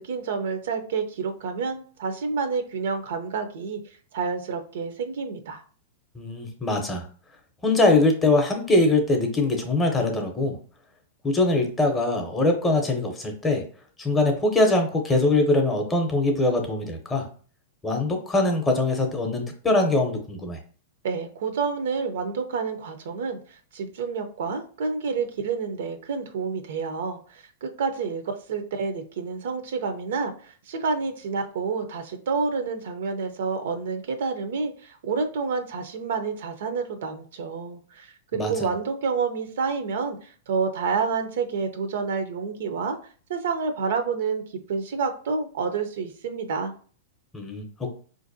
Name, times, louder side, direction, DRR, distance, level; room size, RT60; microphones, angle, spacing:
voice 1, 0.0-3.8 4.1-5.6 21.0-43.0 43.3-44.4 44.7-46.7, right 5 dB, 70° right, 7 dB, 0.5 m, -29 dB
voice 2, 6.2-7.0 7.6-10.6 11.2-13.6 14.0-17.3 17.8-20.6 38.3-38.7 47.3-47.9, left 2 dB, 15° left, 4 dB, 0.6 m, -22 dB
4.1 x 2.6 x 2.6 m, 0.43 s
hypercardioid pair, 145°, 0 cm